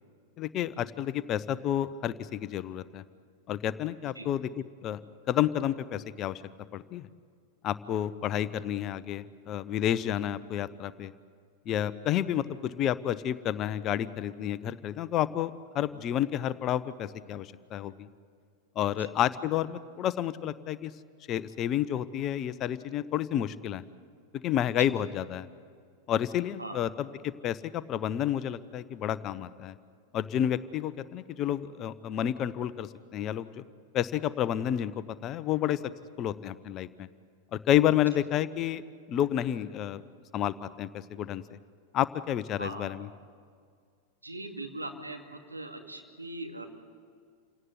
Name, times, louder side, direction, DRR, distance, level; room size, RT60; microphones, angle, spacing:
voice 1, 0.4-3.0 3.5-5.0 5.3-6.4 6.7-7.1 7.6-11.1 11.7-18.1 18.8-20.9 21.3-23.8 24.4-25.5 26.1-29.7 30.1-33.6 33.9-34.9 35.2-35.8 36.2-37.1 37.5-38.8 39.1-40.0 40.3-41.4 41.9-43.1, left 11 dB, 35° left, 15 dB, 0.8 m, -30 dB
voice 2, 44.2-46.6, right 2 dB, 85° right, 2 dB, 2.5 m, -40 dB
28.5 x 17.5 x 9.6 m, 2.1 s
figure-of-eight pair, 90°, 0 cm